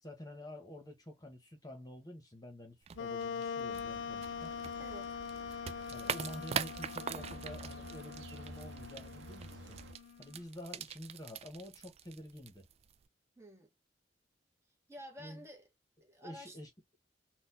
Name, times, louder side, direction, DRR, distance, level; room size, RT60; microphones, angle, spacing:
voice 1, 0.0-4.5 5.9-9.8 10.2-12.7 15.2-15.4 16.2-17.0, left 1 dB, 20° left, 1.1 m, -49 dB
sound 1, 2.8-13.1, right 7 dB, 35° right, 0.3 m, -44 dB
Wind instrument woodwind instrument, 2.9-10.4, left 6 dB, 85° left, 0.4 m, -43 dB
sound 2, 3.7-9.9, right 3 dB, 70° right, 0.7 m, -52 dB
voice 2, 4.8-5.1 13.4-13.7 14.9-15.7 16.0-16.6, equal, 15° right, 1.1 m, -51 dB
4.1 x 2.3 x 2.6 m
head